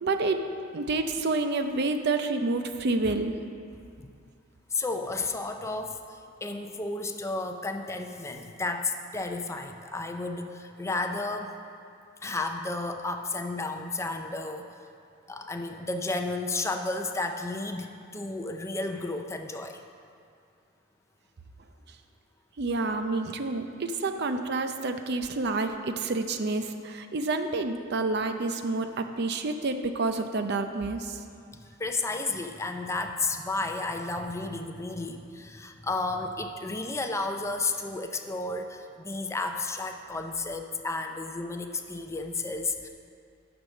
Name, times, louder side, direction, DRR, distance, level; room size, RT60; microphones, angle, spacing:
voice 1, 0.0-0.5 0.7-3.3 22.6-31.2, right 3 dB, 60° right, 7 dB, 0.6 m, -29 dB
voice 2, 4.7-11.5 12.2-14.7 15.3-19.8 31.5-42.9, left 3 dB, 15° left, 5 dB, 0.5 m, -32 dB
9.5 x 6.1 x 6.5 m, 2.4 s
head